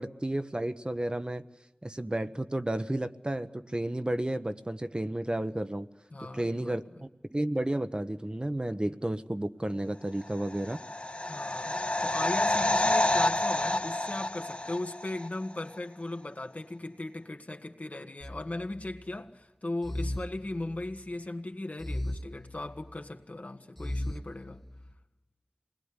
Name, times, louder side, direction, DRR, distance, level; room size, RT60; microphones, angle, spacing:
voice 1, 0.0-1.4 1.8-5.9 6.3-10.8, right 1 dB, 35° right, 1.1 m, -32 dB
voice 2, 6.1-6.8 11.2-24.6, left 2 dB, 65° left, 1.8 m, -38 dB
Death Breath, 10.4-15.3 15.5-15.6, left 2 dB, 45° left, 1.4 m, -28 dB
sound 1, 18.2-19.2 19.8-21.1 21.8-23.1 23.8-24.9, left 1 dB, 5° left, 1.4 m, -37 dB
28.0 x 20.5 x 9.8 m
wide cardioid pair, 50°, 3 cm